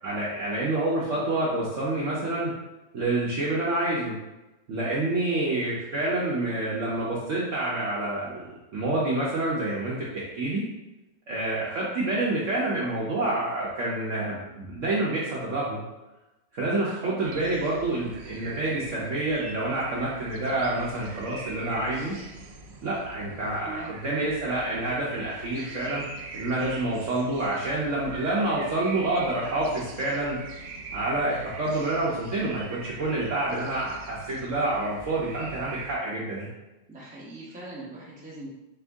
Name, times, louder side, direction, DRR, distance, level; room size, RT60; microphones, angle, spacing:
voice 1, 0.0-2.5 2.9-4.2 4.7-8.4 8.7-10.6 11.3-15.8 16.5-22.2 22.8-26.0 26.3-30.4 30.9-36.5, right 2 dB, 60° right, -6 dB, 0.8 m, -28 dB
sound 1, 17.2-35.9, right 3 dB, 80° right, 1.3 m, -42 dB
voice 2, 23.6-24.3 36.9-38.5, right 2 dB, 10° right, -6 dB, 0.5 m, -41 dB
4.5 x 2.6 x 3.4 m, 1.0 s
omnidirectional pair, 2.0 m